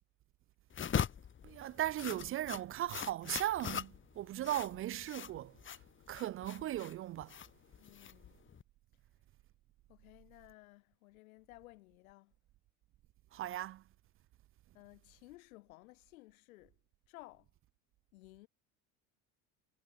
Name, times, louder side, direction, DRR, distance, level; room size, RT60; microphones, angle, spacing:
sound 1, 0.7-8.6, left 8 dB, 30° left, 2.0 m, -41 dB
voice 1, 1.4-5.5 6.1-7.3 13.3-13.8, right 13 dB, 35° right, 0.4 m, -37 dB
voice 2, 7.8-8.4 9.9-12.3 14.7-16.8 17.1-17.5 18.1-18.5, left 20 dB, 90° left, 5.8 m, -57 dB
supercardioid pair, 110°, 41 cm